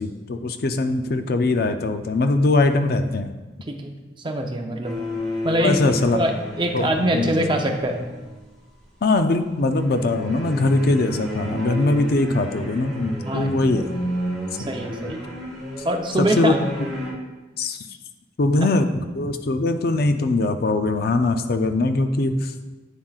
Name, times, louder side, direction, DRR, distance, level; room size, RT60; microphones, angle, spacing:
voice 1, 0.0-3.3 5.6-6.2 6.7-7.3 9.0-13.8 16.2-16.7 17.6-17.8 18.4-22.5, left 2 dB, 55° left, 8 dB, 0.4 m, -21 dB
voice 2, 3.7-4.9 5.4-6.3 6.6-8.0 13.3-13.5 14.7-15.2 15.8-16.7, right 1 dB, 25° right, 3 dB, 0.6 m, -24 dB
sound 1, 4.8-8.4 9.7-17.1, equal, ahead, 2.0 m, -32 dB
9.0 x 7.2 x 2.4 m, 1.2 s
head